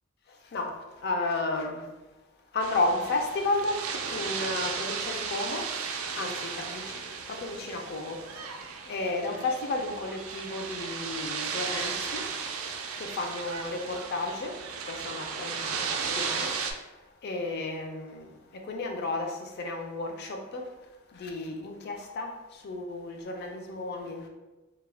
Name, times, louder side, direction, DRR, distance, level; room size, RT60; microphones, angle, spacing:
voice 1, 0.3-1.9 2.5-12.5 13.0-24.3, left 2 dB, 50° left, 0.4 m, -33 dB
sound 1, 2.6-16.7, right 6 dB, 80° right, 0.3 m, -35 dB
2.2 x 2.0 x 3.2 m
head